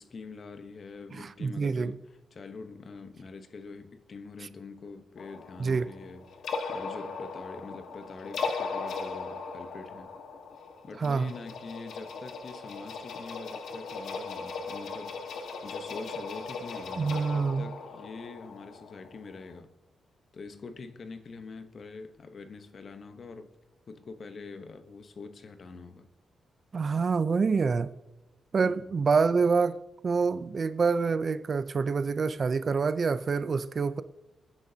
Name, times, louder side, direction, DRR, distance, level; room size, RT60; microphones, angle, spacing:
voice 1, 0.0-2.0 2.3-6.2 6.7-10.1 10.8-15.1 15.6-19.7 20.3-23.5 23.9-26.1 28.6-28.9, left 4 dB, 45° left, 0.9 m, -44 dB
voice 2, 1.1-2.0 5.6-5.9 11.0-11.3 17.0-17.7 26.7-27.9 28.5-29.8 30.0-34.0, right 5 dB, 40° right, 0.5 m, -26 dB
sound 1, 5.2-19.6, left 4 dB, 85° left, 1.5 m, -38 dB
28.5 x 9.7 x 2.8 m
wide cardioid pair, 140°, 0 cm